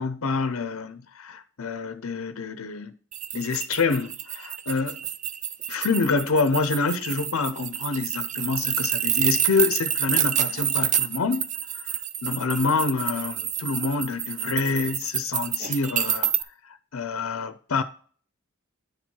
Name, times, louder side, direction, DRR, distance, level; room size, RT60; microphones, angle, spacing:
voice 1, 0.0-2.9 3.3-5.0 5.7-11.5 11.7-16.3 16.6-17.8, left 4 dB, 80° left, 0.6 m, -27 dB
sound 1, 3.1-16.4, right 10 dB, 35° right, 0.5 m, -28 dB
9.7 x 4.6 x 4.3 m
head